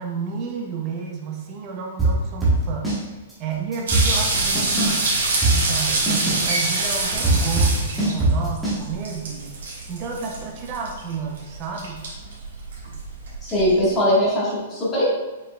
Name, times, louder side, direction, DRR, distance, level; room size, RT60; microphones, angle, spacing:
voice 1, 0.0-5.1 5.5-12.1, right 5 dB, 20° right, 0 dB, 0.5 m, -32 dB
sound 1, 2.0-3.0 3.3-3.4 3.7-5.0 5.4-8.8, right 2 dB, 5° right, 1.0 m, -20 dB
sound 2, 3.9-13.9, right 3 dB, 80° right, 1.5 m, -26 dB
voice 2, 13.4-15.1, equal, 15° left, -7 dB, 1.3 m, -20 dB
5.2 x 4.3 x 2.2 m, 1.1 s
hypercardioid pair, 175°, 0 cm